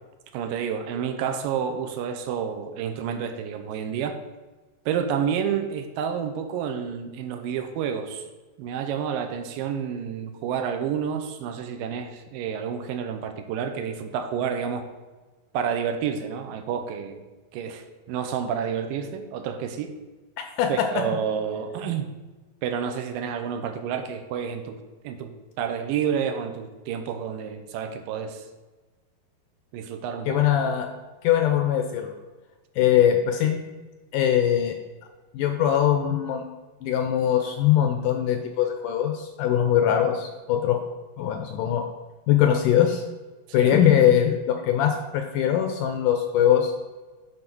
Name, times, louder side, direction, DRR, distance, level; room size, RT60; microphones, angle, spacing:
voice 1, 0.3-4.2 4.9-8.3 8.6-14.9 15.5-17.2 17.5-19.9 20.7-22.1 22.6-24.8 25.0-25.3 25.6-28.5 29.7-30.4 43.5-43.8, right 7 dB, 80° right, 7 dB, 2.3 m, -29 dB
voice 2, 20.4-21.0 30.3-30.9 31.2-32.1 32.8-33.6 34.1-34.7 35.3-36.5 36.8-40.8 41.2-41.8 42.3-43.0 43.5-46.7, left 10 dB, 80° left, 6 dB, 1.9 m, -21 dB
9.7 x 3.9 x 6.0 m, 1.2 s
omnidirectional pair, 4.1 m